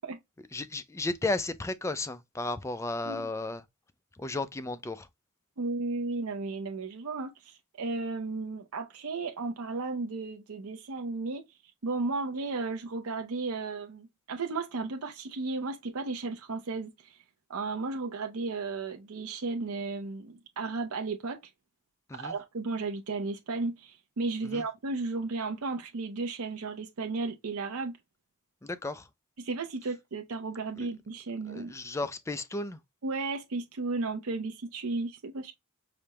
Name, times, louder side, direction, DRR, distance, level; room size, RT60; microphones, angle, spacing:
voice 1, 0.5-3.7 4.1-5.1 22.1-22.4 24.4-24.6 28.6-29.1 30.8-30.9 31.4-32.8, left 2 dB, 15° left, 0.3 m, -34 dB
voice 2, 5.6-11.4 11.8-17.2 17.5-21.4 22.2-27.9 29.4-31.7 33.0-35.5, right 3 dB, 90° right, 0.7 m, -34 dB
5.0 x 2.1 x 2.9 m
head